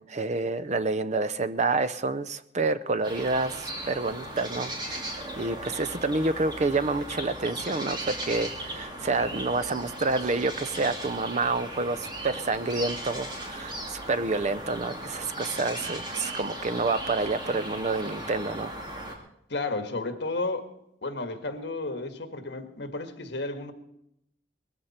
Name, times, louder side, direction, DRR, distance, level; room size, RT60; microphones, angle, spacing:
voice 1, 0.0-18.7, right 3 dB, 40° right, 0.6 m, -28 dB
sound 1, 3.0-19.2, right 1 dB, 25° right, 2.6 m, -37 dB
voice 2, 19.5-20.7 21.0-23.7, left 2 dB, 65° left, 1.8 m, -32 dB
20.0 x 14.5 x 4.3 m
head